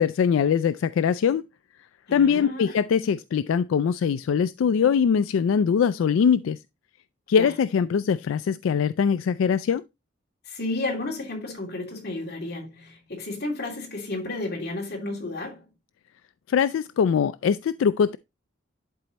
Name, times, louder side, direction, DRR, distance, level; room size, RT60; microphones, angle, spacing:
voice 1, 0.0-1.4 2.1-6.6 7.3-9.8 16.5-18.2, left 7 dB, 85° left, 0.3 m, -22 dB
voice 2, 2.1-2.7 7.4-7.5 10.4-15.6, left 2 dB, 50° left, 2.7 m, -32 dB
11.0 x 4.2 x 2.9 m
head